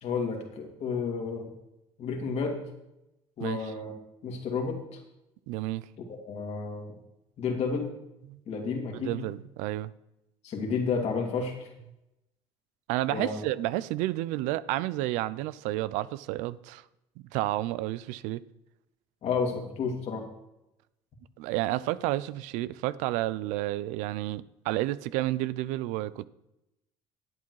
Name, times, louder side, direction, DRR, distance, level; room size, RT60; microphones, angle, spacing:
voice 1, 0.0-1.5 2.0-2.7 3.4-3.9 4.2-5.0 6.1-7.0 7.4-7.9 8.5-9.2 10.4-11.7 13.1-13.4 19.2-20.3, left 5 dB, 60° left, 2.5 m, -31 dB
voice 2, 5.5-5.9 8.3-8.4 8.9-9.9 12.9-16.8 17.2-18.4 21.4-26.3, right 16 dB, 85° right, 0.5 m, -31 dB
11.0 x 8.7 x 4.7 m
supercardioid pair, 85°, 12 cm